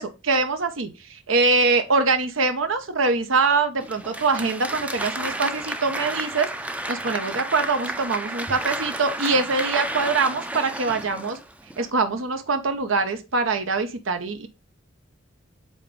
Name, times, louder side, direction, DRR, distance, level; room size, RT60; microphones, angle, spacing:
voice 1, 0.0-11.4 11.8-14.5, right 3 dB, 85° right, 0.9 m, -24 dB
Applause, 3.8-11.9, right 1 dB, 5° right, 0.4 m, -31 dB
5.1 x 4.0 x 5.1 m
head